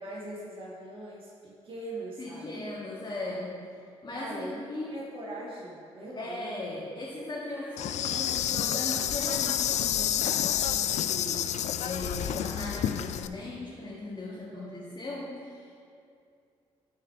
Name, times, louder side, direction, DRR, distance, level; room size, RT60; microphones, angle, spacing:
voice 1, 0.0-2.6 4.1-4.6 4.9-6.5 14.3-14.9, right 1 dB, 40° right, -5 dB, 1.6 m, -41 dB
voice 2, 2.2-3.6 4.0-5.0 6.2-11.5 11.8-15.8, left 2 dB, 35° left, -6 dB, 1.6 m, -38 dB
Insect, 7.8-13.3, left 10 dB, 60° left, 0.4 m, -29 dB
9.9 x 4.4 x 4.4 m, 2.4 s
hypercardioid pair, 50°, 13 cm